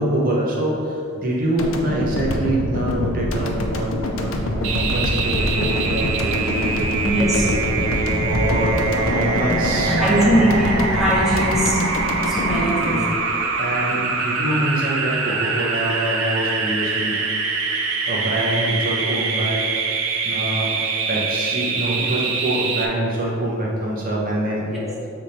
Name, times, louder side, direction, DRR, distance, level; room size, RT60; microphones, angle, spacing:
voice 1, 0.0-6.7 7.3-7.8 8.2-10.3 12.5-13.0 13.6-17.2 18.1-19.7 20.2-20.7 21.1-24.8, right 1 dB, 45° right, -4 dB, 0.9 m, -25 dB
sound 1, 1.6-13.8, left 1 dB, 85° left, 0.6 m, -26 dB
sound 2, 4.6-22.8, right 4 dB, 85° right, 0.6 m, -24 dB
voice 2, 7.0-7.5 8.3-8.4 9.8-11.8 12.3-13.1 24.7-25.0, equal, ahead, -7 dB, 1.0 m, -20 dB
6.5 x 3.6 x 4.2 m, 2.5 s
head